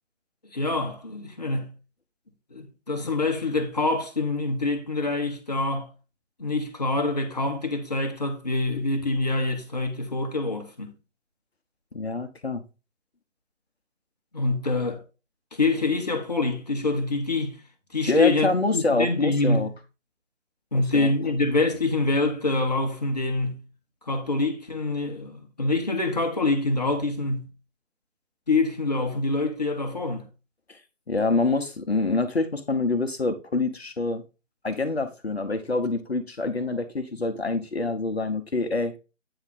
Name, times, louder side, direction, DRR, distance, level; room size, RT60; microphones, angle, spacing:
voice 1, 0.5-1.7 2.5-5.9 6.4-10.9 14.3-15.0 15.5-17.6 17.9-19.7 20.7-23.6 24.1-27.5 28.5-30.3, left 2 dB, 35° left, 1.0 m, -25 dB
voice 2, 11.9-12.6 18.1-19.7 20.7-21.1 30.7-30.8 31.1-34.2 34.6-38.9, left 3 dB, 55° left, 1.0 m, -26 dB
8.9 x 3.6 x 4.0 m
figure-of-eight pair, 160°, 38 cm